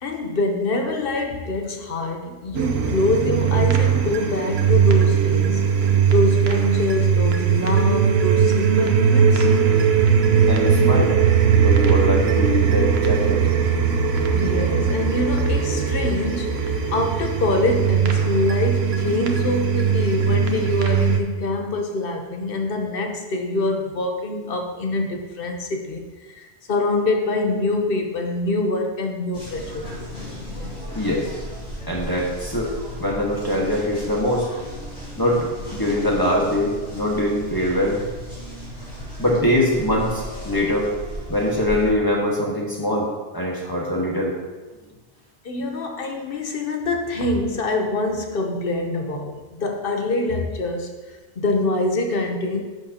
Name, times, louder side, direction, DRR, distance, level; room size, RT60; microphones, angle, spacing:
voice 1, 0.0-5.7 6.1-9.5 14.3-26.1 26.3-29.9 45.4-50.9 51.4-52.6, left 2 dB, 65° left, 3 dB, 1.1 m, -25 dB
sound 1, 2.5-21.2, right 7 dB, 80° right, 1.0 m, -19 dB
voice 2, 10.5-11.1 11.5-13.4 30.9-31.3 31.9-32.7 33.0-34.5 35.2-35.5 35.7-38.0 39.2-40.9 41.3-43.1 43.3-44.3, left 1 dB, 20° left, -4 dB, 1.5 m, -22 dB
sound 2, 29.3-41.9, equal, 85° left, 3.0 m, -35 dB
10.5 x 6.7 x 2.9 m, 1.2 s
omnidirectional pair, 1.0 m